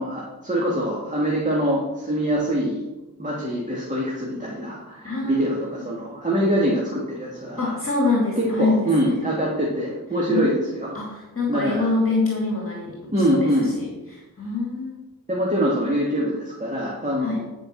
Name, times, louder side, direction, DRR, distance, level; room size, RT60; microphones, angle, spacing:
voice 1, 0.0-2.8 3.2-7.8 8.4-10.9 11.5-11.9 13.1-13.7 15.3-17.4, equal, 20° right, -5 dB, 2.6 m, -24 dB
voice 2, 5.0-5.5 7.6-9.2 10.3-10.7 10.9-13.0 13.3-15.0 17.2-17.4, left 3 dB, 35° left, -3 dB, 2.6 m, -25 dB
11.5 x 5.4 x 6.2 m, 1.0 s
wide cardioid pair, 60°, 37 cm